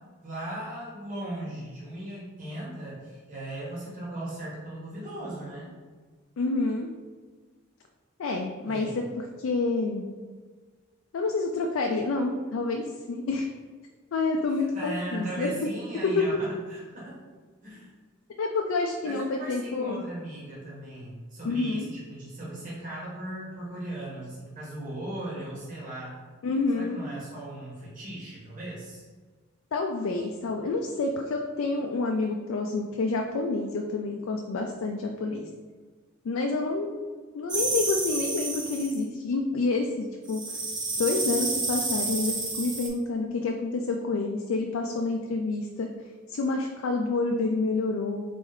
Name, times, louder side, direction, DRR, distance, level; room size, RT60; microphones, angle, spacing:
voice 1, 0.2-5.7 8.6-9.0 14.7-17.2 17.6-17.9 19.0-26.2 26.7-29.0, right 1 dB, 40° right, -7 dB, 1.5 m, -38 dB
voice 2, 6.4-6.9 8.2-8.9 9.4-10.1 11.1-13.5 14.1-15.7 16.0-16.2 18.4-20.0 21.4-21.9 26.4-27.0 29.7-35.5 36.2-37.0 37.3-40.4 41.0-45.9 46.3-48.2, left 3 dB, 85° left, 2 dB, 0.4 m, -28 dB
sound 1, 37.5-39.0 40.3-42.9, right 3 dB, 20° right, 0.7 m, -30 dB
4.1 x 3.1 x 3.7 m, 1.5 s
head